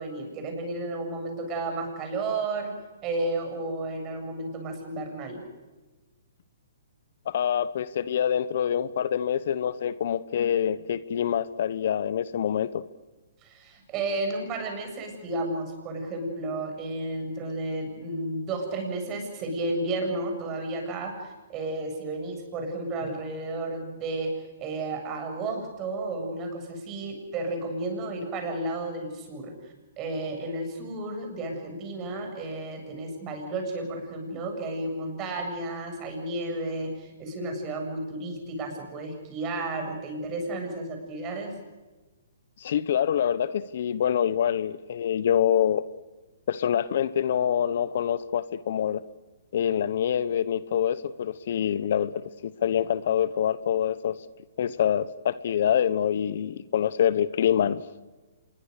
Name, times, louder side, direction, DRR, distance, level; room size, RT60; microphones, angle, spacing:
voice 1, 0.0-2.7 3.0-5.4 13.4-41.5, right 2 dB, 25° right, 4 dB, 7.6 m, -32 dB
voice 2, 7.3-12.8 42.6-45.8 46.5-49.0 49.5-54.2 54.6-57.8, left 9 dB, 60° left, 17 dB, 1.0 m, -26 dB
26.5 x 22.0 x 6.7 m, 1.2 s
hypercardioid pair, 140°, 0 cm